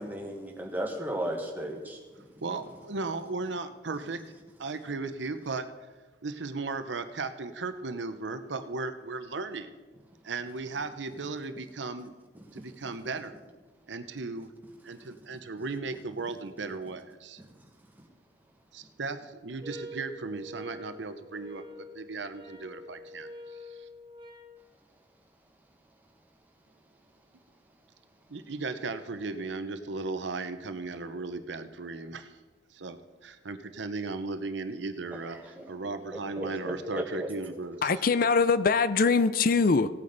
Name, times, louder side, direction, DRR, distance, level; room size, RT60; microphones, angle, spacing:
voice 1, 0.0-2.0 35.3-35.7 36.4-37.3, equal, 10° right, 1 dB, 1.6 m, -35 dB
voice 2, 2.4-4.2 4.6-5.7 6.2-9.7 10.2-12.1 12.5-13.4 13.9-14.5 14.8-17.4 18.7-23.9 28.3-32.4 32.7-38.0, right 3 dB, 80° right, 10 dB, 0.8 m, -36 dB
sound 1, 19.6-24.5, equal, 25° right, 1.7 m, -46 dB
voice 3, 37.8-39.9, left 4 dB, 50° left, 13 dB, 0.5 m, -23 dB
17.5 x 8.6 x 4.0 m, 1.3 s
head